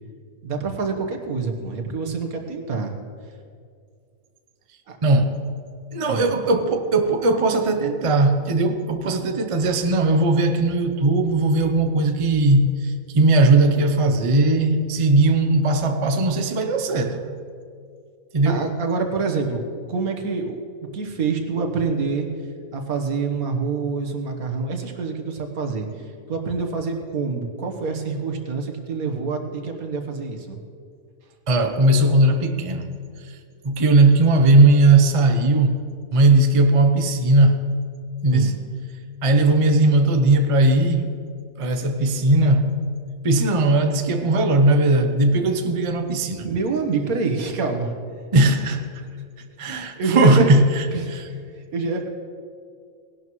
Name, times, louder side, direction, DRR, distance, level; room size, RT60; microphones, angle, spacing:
voice 1, 0.4-3.0 4.9-5.0 6.1-6.3 18.4-19.6 19.9-20.6 20.9-22.3 22.7-30.6 38.3-38.5 46.4-48.0 49.6-50.5 50.9-52.1, right 4 dB, 70° right, 1.6 m, -26 dB
voice 2, 5.0-5.4 5.9-17.2 18.3-18.7 31.5-32.9 33.2-33.3 33.6-35.8 36.1-37.7 38.2-38.6 39.2-41.1 41.6-42.7 43.2-46.5 48.3-48.8 49.6-50.8 51.1-51.2, right 2 dB, 35° right, 0.5 m, -18 dB
19.0 x 11.5 x 3.1 m
omnidirectional pair, 1.6 m